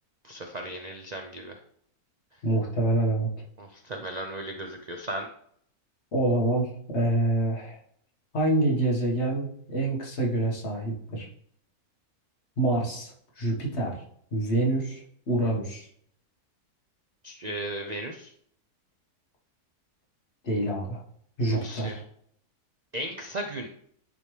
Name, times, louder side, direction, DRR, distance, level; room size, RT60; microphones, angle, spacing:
voice 1, 0.2-1.6 3.6-5.3 17.2-18.3 21.5-22.0 22.9-23.7, right 1 dB, 90° right, 3 dB, 0.3 m, -36 dB
voice 2, 2.4-3.3 6.1-7.8 8.3-11.3 12.6-14.0 14.3-15.9 20.4-21.0 21.4-22.0, right 1 dB, 45° left, -2 dB, 1.7 m, -26 dB
9.6 x 3.5 x 3.2 m, 0.66 s
omnidirectional pair, 1.6 m